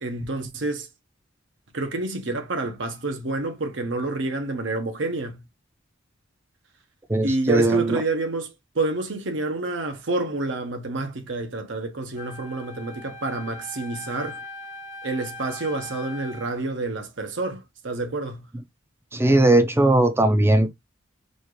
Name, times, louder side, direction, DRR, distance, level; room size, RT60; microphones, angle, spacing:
voice 1, 0.0-0.9 1.7-5.4 7.2-14.4 15.0-18.4, right 2 dB, 65° right, 0.9 m, -28 dB
voice 2, 7.1-8.0 19.1-20.7, right 1 dB, 10° right, 0.5 m, -19 dB
Wind instrument woodwind instrument, 12.2-16.6, left 2 dB, 45° left, 0.8 m, -40 dB
4.1 x 2.5 x 3.1 m
head